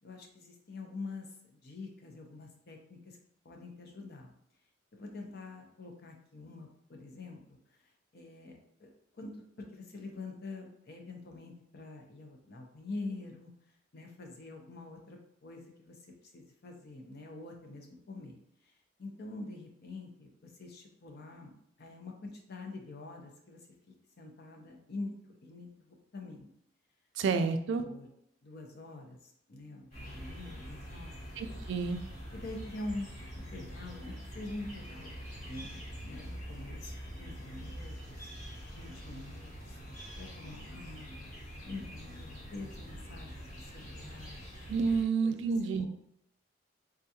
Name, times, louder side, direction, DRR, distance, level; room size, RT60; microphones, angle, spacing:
voice 1, 0.0-3.2 3.4-4.3 4.9-7.4 7.7-7.8 8.1-9.5 9.7-13.5 13.9-16.0 16.2-18.3 18.6-18.7 19.0-21.5 21.8-23.6 23.9-26.5 27.8-28.1 28.4-31.2 32.3-33.1 33.3-35.1 35.5-38.3 38.7-39.8 40.2-41.3 41.6-44.4 45.2-45.4 45.8-45.9, left 2 dB, 55° left, 2 dB, 0.6 m, -45 dB
voice 2, 27.2-27.8 31.4-32.0 44.7-45.9, right 5 dB, 65° right, 7 dB, 0.3 m, -29 dB
sound 1, 29.9-45.0, equal, 40° left, 1.1 m, -45 dB
3.6 x 2.3 x 2.7 m, 0.73 s
head